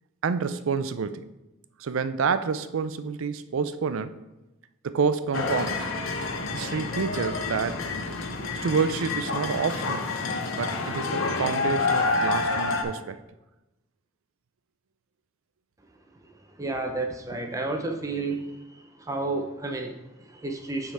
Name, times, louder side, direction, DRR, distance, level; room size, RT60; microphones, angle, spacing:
voice 1, 0.2-1.3 1.8-4.2 4.8-5.9 6.5-7.8 8.6-10.1 10.6-13.2, right 5 dB, 80° right, 12 dB, 0.4 m, -28 dB
sound 1, 5.3-12.8, left 3 dB, 80° left, 0.8 m, -28 dB
voice 2, 16.6-18.5 19.0-20.9, right 2 dB, 15° right, 3 dB, 0.6 m, -31 dB
9.2 x 3.6 x 4.2 m, 0.98 s
head